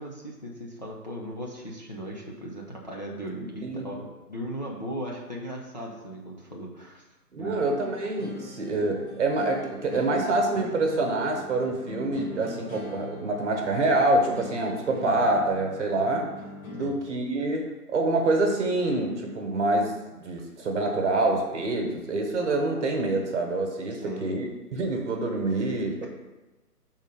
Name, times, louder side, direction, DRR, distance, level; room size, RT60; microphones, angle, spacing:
voice 1, 0.0-7.0 7.4-7.7 16.8-17.0 23.9-24.4, equal, 30° left, -3 dB, 0.5 m, -37 dB
voice 2, 7.3-16.3 16.7-24.5 24.7-26.1, right 2 dB, 45° right, 2 dB, 1.3 m, -26 dB
sound 1, 7.8-16.9, left 1 dB, 60° left, 1.6 m, -43 dB
5.4 x 4.0 x 5.1 m, 1.1 s
figure-of-eight pair, 150°, 48 cm